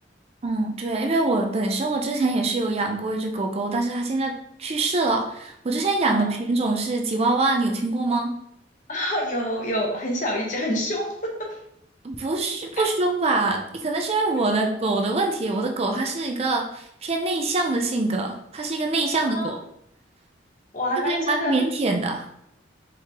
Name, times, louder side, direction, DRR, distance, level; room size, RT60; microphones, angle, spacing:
voice 1, 0.4-8.3 12.0-19.6 21.0-22.3, right 2 dB, 35° right, 3 dB, 0.4 m, -24 dB
voice 2, 8.9-11.3 12.7-12.8 14.5-14.7 19.2-19.5 20.7-21.6, equal, 45° left, -1 dB, 1.0 m, -27 dB
4.6 x 3.6 x 2.9 m, 0.74 s
head